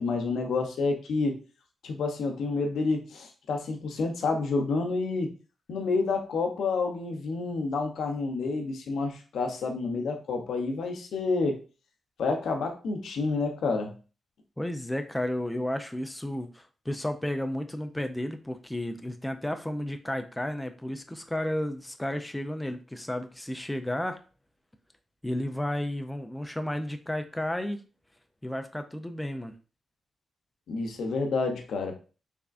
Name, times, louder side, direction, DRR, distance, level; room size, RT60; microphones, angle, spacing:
voice 1, 0.0-1.4 1.8-5.3 5.7-11.6 12.2-13.9 30.7-32.0, left 3 dB, 85° left, 3 dB, 0.7 m, -29 dB
voice 2, 14.6-24.2 25.2-27.8 28.4-29.5, left 1 dB, 10° left, 7 dB, 0.4 m, -32 dB
3.5 x 3.3 x 2.4 m, 0.35 s
wide cardioid pair, 115°, 0 cm